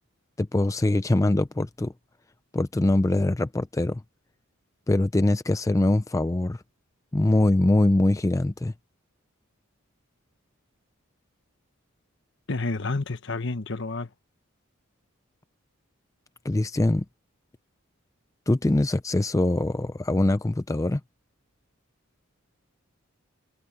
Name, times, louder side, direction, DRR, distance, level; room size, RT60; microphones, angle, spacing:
voice 1, 0.4-1.9 2.5-4.0 4.9-6.6 7.1-8.7 16.4-17.0 18.5-21.0, left 1 dB, 15° left, 0.4 m, -23 dB
voice 2, 12.5-14.1, left 3 dB, 60° left, 1.2 m, -29 dB
head